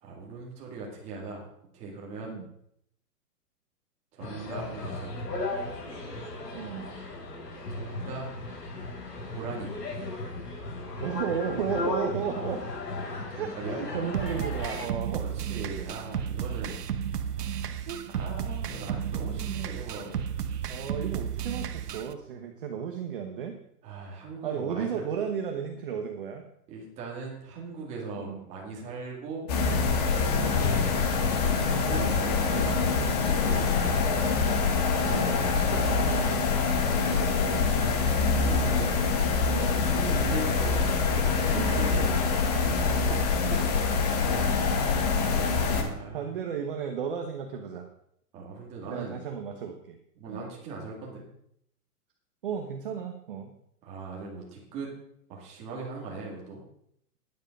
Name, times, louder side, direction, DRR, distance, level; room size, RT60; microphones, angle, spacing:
voice 1, 0.0-1.5 1.7-2.4 4.1-5.5 7.7-8.3 9.3-9.7 13.3-13.8 15.2-16.8 18.1-20.1 23.8-25.1 26.7-29.5 30.1-34.1 37.7-38.9 39.5-42.5 45.0-46.4 48.3-49.2 50.2-51.2 53.8-54.9 55.3-56.6, right 4 dB, 15° right, -2 dB, 2.2 m, -40 dB
sound 1, 4.2-14.9, left 2 dB, 80° left, 6.2 m, -36 dB
voice 2, 6.5-6.9 11.0-12.7 13.3-15.2 17.9-18.0 20.7-23.6 24.4-26.4 28.2-28.4 30.3-30.6 32.6-32.9 35.0-37.8 41.6-41.8 42.9-43.2 43.5-43.7 45.3-45.5 45.8-47.9 48.9-50.0 50.3-50.5 52.4-53.5, right 7 dB, 35° right, 4 dB, 1.1 m, -34 dB
sound 2, 14.1-22.1, right 8 dB, 75° right, 1.2 m, -33 dB
sound 3, 29.5-45.8, left 4 dB, 25° left, 1.2 m, -25 dB
12.5 x 10.5 x 5.3 m, 0.72 s
hypercardioid pair, 175°, 47 cm